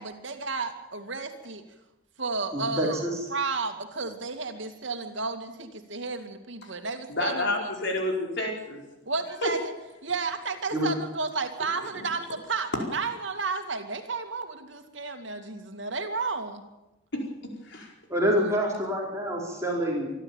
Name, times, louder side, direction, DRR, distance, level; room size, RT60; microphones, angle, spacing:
voice 1, 0.0-1.6 2.2-7.7 9.1-9.7 10.0-16.6 18.3-18.5, right 4 dB, 65° right, 6 dB, 2.4 m, -32 dB
voice 2, 2.5-3.3 10.7-10.9 18.1-20.1, equal, 15° right, -2 dB, 4.7 m, -27 dB
voice 3, 7.1-8.8 9.4-9.5 12.0-12.1 17.1-17.9, left 1 dB, 60° left, 1 dB, 4.8 m, -30 dB
25.0 x 12.5 x 9.0 m, 0.98 s
head